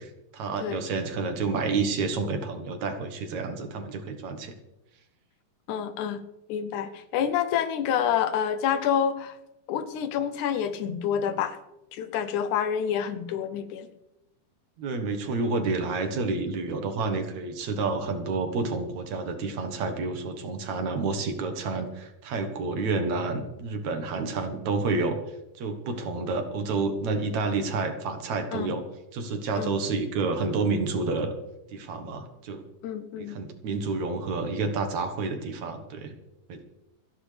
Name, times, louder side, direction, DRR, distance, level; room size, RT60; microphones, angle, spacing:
voice 1, 0.0-4.5 14.8-25.2 25.6-28.8 29.1-31.3 31.7-32.6 33.1-36.1 36.5-36.6, right 3 dB, 65° right, 6 dB, 2.5 m, -29 dB
voice 2, 5.7-6.2 6.5-9.4 9.7-11.6 11.9-13.9 28.5-28.8 29.6-29.8 32.8-33.4, left 8 dB, 75° left, 11 dB, 2.1 m, -28 dB
27.5 x 10.0 x 3.4 m, 0.91 s
omnidirectional pair, 3.7 m